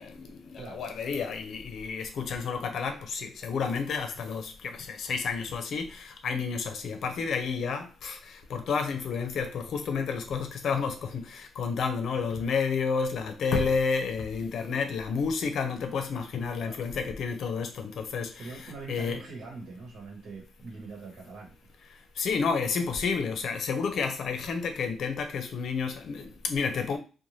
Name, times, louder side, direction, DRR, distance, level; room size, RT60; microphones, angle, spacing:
voice 1, 0.0-18.5 18.9-19.2 22.2-27.0, left 5 dB, 60° left, 0.6 m, -30 dB
voice 2, 18.4-21.9, right 3 dB, 65° right, 1.2 m, -43 dB
2.6 x 2.2 x 3.1 m
cardioid pair, 150°, 0 cm